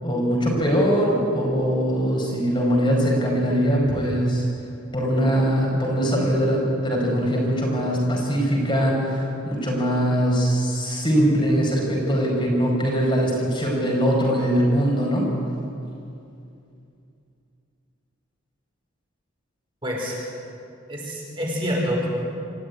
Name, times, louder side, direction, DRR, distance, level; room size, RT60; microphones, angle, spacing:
voice 1, 0.0-4.5 4.9-15.3, equal, 25° left, -2 dB, 5.1 m, -22 dB
voice 2, 19.8-20.2 20.9-22.1, equal, 25° right, -3 dB, 5.0 m, -27 dB
27.0 x 14.5 x 9.6 m, 2.6 s
head